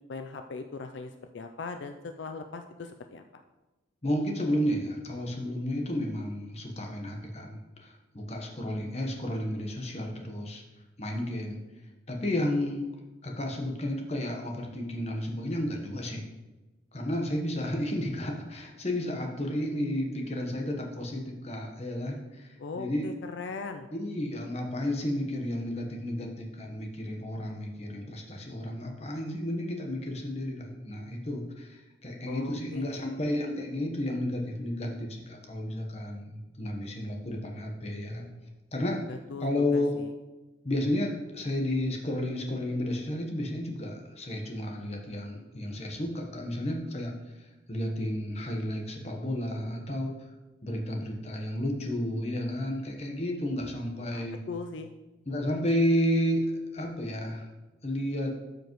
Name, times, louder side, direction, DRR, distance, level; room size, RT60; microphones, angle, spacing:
voice 1, 0.1-3.4 22.6-23.9 32.3-33.2 39.1-40.1 54.1-54.9, left 4 dB, 70° left, 6 dB, 0.4 m, -40 dB
voice 2, 4.0-10.6 11.0-11.6 12.1-12.9 13.2-16.2 16.9-23.1 23.9-38.3 38.7-39.0 39.4-40.0 40.6-50.3 50.6-54.4 55.3-57.5 57.8-58.3, left 1 dB, 35° left, 1 dB, 1.1 m, -32 dB
12.5 x 5.0 x 3.1 m, 1.1 s
head